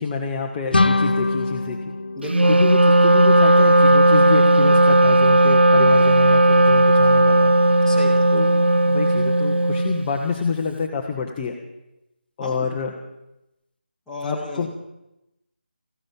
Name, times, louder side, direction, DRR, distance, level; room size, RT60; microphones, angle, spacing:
voice 1, 0.0-1.8 2.5-7.9 8.3-8.5 8.9-11.5 12.4-12.9 14.2-14.7, left 5 dB, 20° left, 0 dB, 1.0 m, -27 dB
sound 1, 0.7-3.5, left 2 dB, 60° left, 0.6 m, -23 dB
voice 2, 2.2-2.5 7.9-8.2 12.4-12.7 14.1-14.7, left 1 dB, ahead, -7 dB, 1.9 m, -33 dB
Wind instrument woodwind instrument, 2.3-10.1, right 1 dB, 80° right, 0.5 m, -15 dB
15.0 x 10.5 x 7.2 m, 0.92 s
figure-of-eight pair, 155°, 6 cm